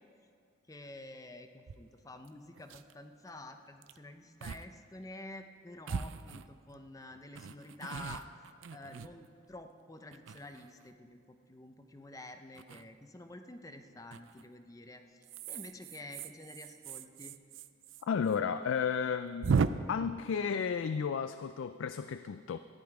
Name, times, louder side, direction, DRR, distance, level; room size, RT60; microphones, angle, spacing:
voice 1, 0.7-8.3 8.7-15.2 15.5-17.4, left 2 dB, 15° left, 7 dB, 0.6 m, -49 dB
sound 1, 1.7-1.8 2.2-2.3 2.6-2.9 3.8-4.0 4.4-4.6 5.0-5.1 5.9-6.8 7.3-9.6 10.1-10.9 12.5-12.8 14.1-14.4 15.2-18.0 18.3-18.4 18.7-18.8 19.4-19.7, right 5 dB, 75° right, 0.4 m, -36 dB
voice 2, 18.1-19.5 19.9-22.6, left 6 dB, 80° left, 11 dB, 0.4 m, -33 dB
14.0 x 10.5 x 4.7 m, 2.4 s
head